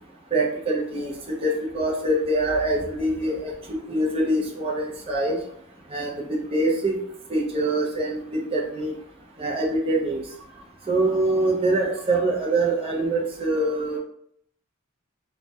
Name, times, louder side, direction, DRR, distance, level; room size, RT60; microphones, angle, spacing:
voice 1, 0.3-1.1 1.4-5.4 5.9-7.0 7.3-8.9 9.4-10.2 10.9-14.0, right 2 dB, 25° right, -1 dB, 0.4 m, -24 dB
2.2 x 2.1 x 2.6 m, 0.68 s
head